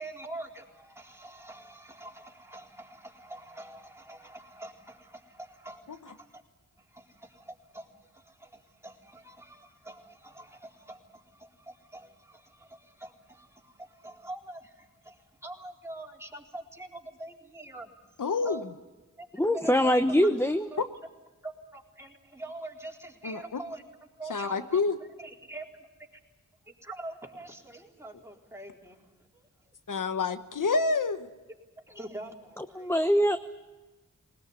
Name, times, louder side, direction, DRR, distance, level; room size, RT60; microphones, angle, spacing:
voice 1, 0.0-6.4 6.8-17.9 18.4-18.6 19.2-20.3 20.7-20.8 21.4-23.8 24.2-24.8 25.2-25.6 26.8-29.0 29.3-29.7 31.9-33.0, right 2 dB, 10° right, -1 dB, 4.2 m, -44 dB
voice 2, 18.2-18.7 23.2-23.6 24.3-25.0 29.9-31.3, left 4 dB, 85° left, 10 dB, 1.1 m, -28 dB
voice 3, 19.4-20.7 32.6-33.4, equal, 10° left, 8 dB, 1.0 m, -24 dB
20.5 x 19.5 x 9.6 m, 1.2 s
wide cardioid pair, 55°, 31 cm